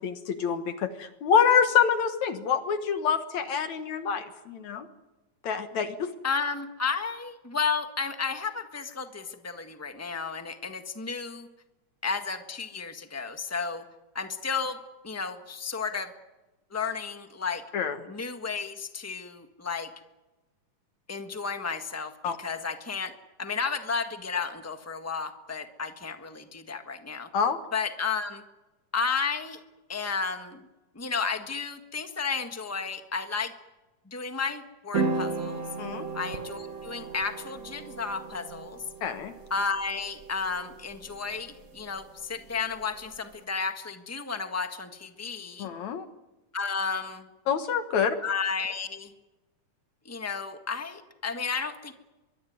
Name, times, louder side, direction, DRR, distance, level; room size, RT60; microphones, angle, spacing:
voice 1, 0.0-4.9 5.4-6.1 17.7-18.0 22.2-22.4 27.3-27.6 35.8-36.1 39.0-39.3 45.6-46.1 47.5-48.2, left 7 dB, 70° left, 9 dB, 2.7 m, -26 dB
voice 2, 6.2-11.5 12.0-13.8 14.1-16.1 16.7-17.6 18.1-19.9 21.1-23.1 23.4-27.3 27.7-28.4 28.9-29.6 29.9-30.6 30.9-33.5 34.1-35.6 36.1-38.8 39.5-45.7 46.5-47.3 48.2-49.1 50.0-51.9, left 5 dB, 20° left, 7 dB, 0.4 m, -32 dB
sound 1, 34.9-43.4, right 4 dB, 45° right, 1.1 m, -36 dB
23.5 x 22.5 x 9.5 m, 1.1 s
omnidirectional pair, 3.5 m